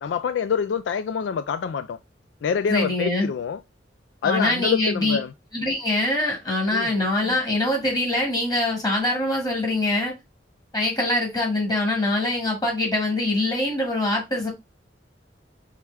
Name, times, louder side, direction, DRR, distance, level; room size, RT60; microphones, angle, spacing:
voice 1, 0.0-2.0 2.4-3.6 4.2-5.3 6.7-6.9, left 6 dB, 75° left, 0.3 m, -26 dB
voice 2, 2.7-3.3 4.2-5.2 5.5-10.1 10.7-14.5, left 1 dB, 20° left, 2.0 m, -23 dB
4.8 x 3.1 x 3.4 m
head